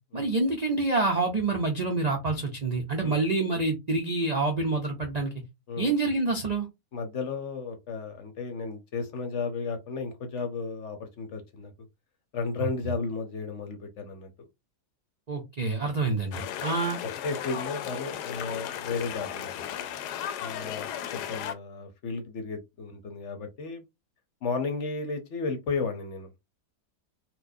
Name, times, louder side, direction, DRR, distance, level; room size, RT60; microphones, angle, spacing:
voice 1, 0.1-5.3 5.8-6.7 15.3-17.0, right 3 dB, 85° right, 0.3 m, -27 dB
voice 2, 6.9-11.7 12.3-14.3 16.0-16.1 17.2-19.7 20.4-23.8 24.4-26.3, left 4 dB, 60° left, 0.9 m, -34 dB
sound 1, 16.3-21.5, left 10 dB, 80° left, 1.1 m, -35 dB
4.3 x 2.2 x 2.6 m
omnidirectional pair, 1.7 m